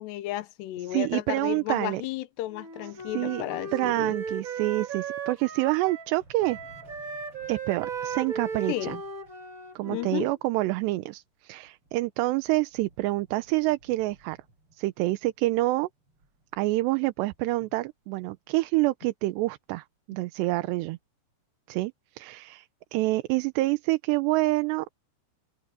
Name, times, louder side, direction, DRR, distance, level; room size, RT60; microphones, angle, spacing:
voice 1, 0.0-4.1 8.7-9.0 9.9-10.3, left 15 dB, 85° left, 3.1 m, -33 dB
voice 2, 0.9-2.0 3.1-3.4 3.7-6.6 7.5-9.0 9.8-14.4 14.8-15.9 16.6-21.0 21.7-22.7 22.9-24.9, right 19 dB, 85° right, 2.9 m, -27 dB
Wind instrument woodwind instrument, 2.5-6.2 6.4-10.3, right 5 dB, 65° right, 0.8 m, -36 dB
sound 1, 2.8-18.6 19.7-20.0 20.3-21.0, right 2 dB, 30° right, 8.0 m, -60 dB
omnidirectional pair, 4.9 m